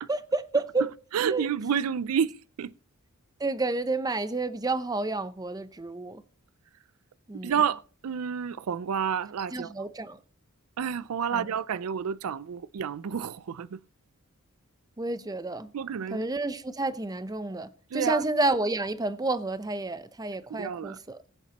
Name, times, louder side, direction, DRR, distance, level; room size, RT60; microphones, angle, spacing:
voice 1, 0.1-0.9 1.3-1.4 3.4-6.2 7.3-7.5 9.5-10.2 11.3-11.5 15.0-15.7 16.1-21.2, right 2 dB, 15° right, 0.6 m, -30 dB
voice 2, 1.1-2.7 7.4-9.9 10.8-13.8 15.7-16.3 17.9-18.2 20.5-21.0, right 7 dB, 85° right, 0.4 m, -30 dB
21.0 x 7.2 x 2.9 m
head